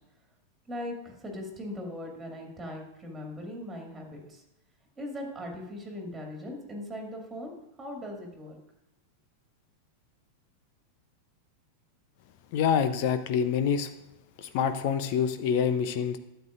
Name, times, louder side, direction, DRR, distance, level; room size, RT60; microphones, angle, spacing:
voice 1, 0.7-4.4 5.0-7.5 7.8-8.6, left 1 dB, 15° right, 1 dB, 2.2 m, -39 dB
voice 2, 12.5-13.9 14.4-16.2, left 7 dB, 45° left, 10 dB, 0.7 m, -26 dB
12.0 x 8.0 x 2.5 m, 0.87 s
figure-of-eight pair, 90°, 0 cm